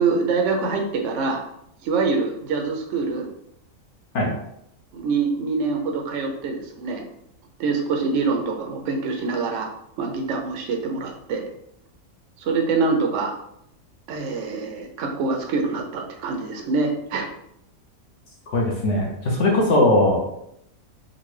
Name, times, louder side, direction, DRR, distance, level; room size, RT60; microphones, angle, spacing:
voice 1, 0.0-1.4 1.8-3.3 4.9-7.1 7.6-9.7 10.0-11.5 12.4-13.4 14.1-17.3, right 4 dB, 70° right, 2 dB, 0.8 m, -25 dB
voice 2, 18.5-20.2, left 1 dB, 60° left, -2 dB, 0.9 m, -19 dB
3.8 x 2.2 x 3.1 m, 0.76 s
omnidirectional pair, 1.5 m